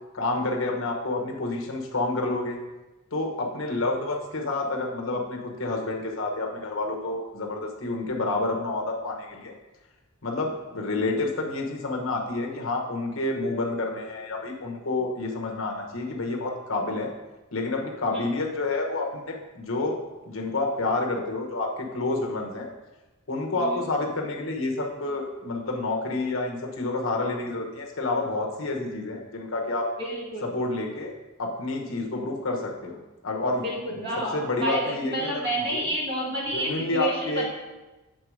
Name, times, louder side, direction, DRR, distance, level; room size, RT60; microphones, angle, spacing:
voice 1, 0.1-2.6 3.1-9.5 10.2-17.1 17.5-20.0 20.3-22.7 23.3-29.9 30.4-31.1 31.4-33.6 33.9-35.4 35.7-35.9 36.5-37.5, left 2 dB, 65° left, 1 dB, 1.1 m, -29 dB
voice 2, 30.0-30.5 33.6-37.5, right 1 dB, 50° right, -4 dB, 2.1 m, -30 dB
7.7 x 4.0 x 4.8 m, 1.1 s
head